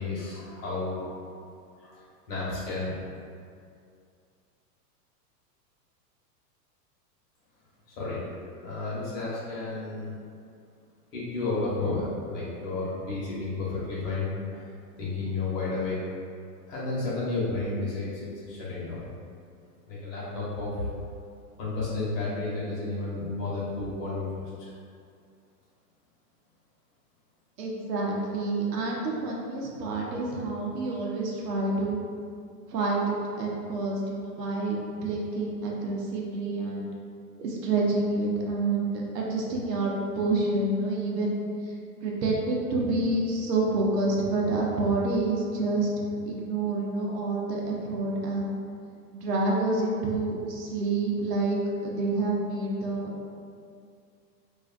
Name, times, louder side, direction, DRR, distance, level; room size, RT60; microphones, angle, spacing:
voice 1, 0.0-1.4 1.8-3.0 8.0-8.2 8.6-10.2 11.1-14.7 15.0-16.0 16.7-19.1 19.9-20.9 21.6-24.7, left 3 dB, 70° left, -8 dB, 1.1 m, -32 dB
voice 2, 27.6-32.0 32.7-36.9 37.4-41.4 42.0-48.6 49.1-53.1, right 2 dB, 75° right, -3 dB, 0.7 m, -28 dB
2.5 x 2.4 x 2.4 m, 2.3 s
hypercardioid pair, 115°, 49 cm